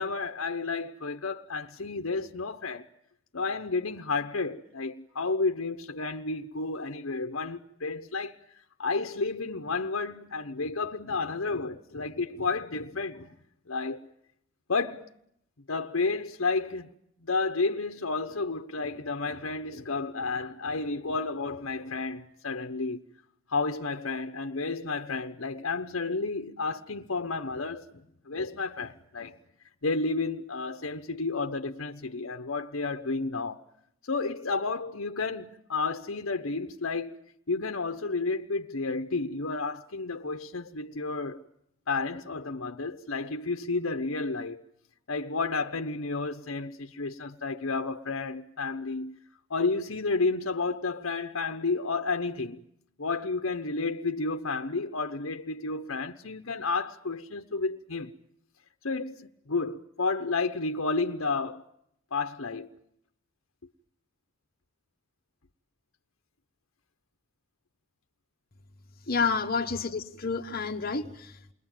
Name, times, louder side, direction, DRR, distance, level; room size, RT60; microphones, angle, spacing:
voice 1, 0.0-2.9 3.3-8.4 8.8-13.3 13.7-14.0 14.7-15.1 15.7-16.9 17.2-23.0 23.5-29.4 29.8-33.6 34.0-37.2 37.5-41.4 41.9-44.6 45.1-49.2 49.5-52.6 53.0-58.1 58.8-61.6 62.1-62.7, left 3 dB, 75° left, 1.1 m, -31 dB
voice 2, 69.1-71.5, left 4 dB, 45° left, 1.4 m, -30 dB
29.0 x 22.0 x 9.1 m
head